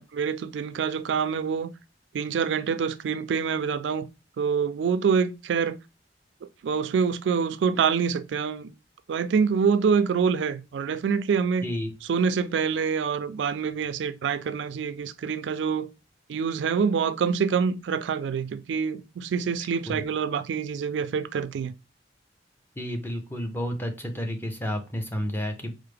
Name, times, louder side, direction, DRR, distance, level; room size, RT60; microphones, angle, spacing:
voice 1, 0.0-1.7 2.1-4.1 4.4-5.8 6.6-8.7 9.1-11.7 12.1-15.9 16.3-21.7, right 6 dB, 85° right, 0.3 m, -26 dB
voice 2, 11.6-11.9 19.9-20.0 22.8-25.7, equal, 10° left, 0.6 m, -31 dB
4.5 x 2.0 x 3.3 m
head